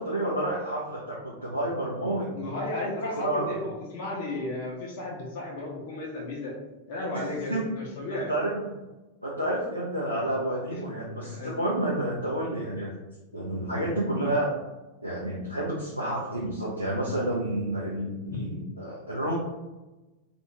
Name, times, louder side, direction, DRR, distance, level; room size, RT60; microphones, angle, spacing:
voice 1, 0.0-2.3 3.2-3.6 7.1-7.2 7.5-7.6 8.3-8.6 9.2-12.9 13.3-14.5 15.0-19.3, right 1 dB, 90° right, -5 dB, 0.4 m, -29 dB
voice 2, 2.3-6.5 6.9-8.3 10.7-10.8 11.2-11.6 18.3-18.5, left 2 dB, 50° left, -2 dB, 0.6 m, -34 dB
2.4 x 2.3 x 3.0 m, 1.1 s
figure-of-eight pair, 90°, 0 cm